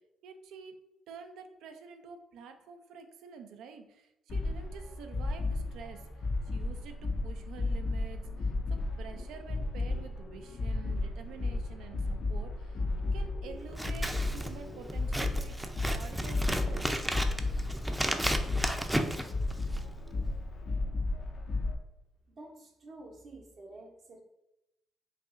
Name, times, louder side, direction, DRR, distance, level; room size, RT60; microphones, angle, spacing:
voice 1, 0.2-0.7 1.1-12.8 13.1-17.0, right 6 dB, 75° right, 6 dB, 0.5 m, -48 dB
sound 1, 4.3-21.7, left 2 dB, 55° left, 0.6 m, -34 dB
Scissors, 13.7-19.9, right 1 dB, 10° right, 0.6 m, -34 dB
voice 2, 22.4-24.2, right 2 dB, 55° right, -2 dB, 0.9 m, -49 dB
5.2 x 2.7 x 2.6 m, 0.89 s
hypercardioid pair, 50°, 0 cm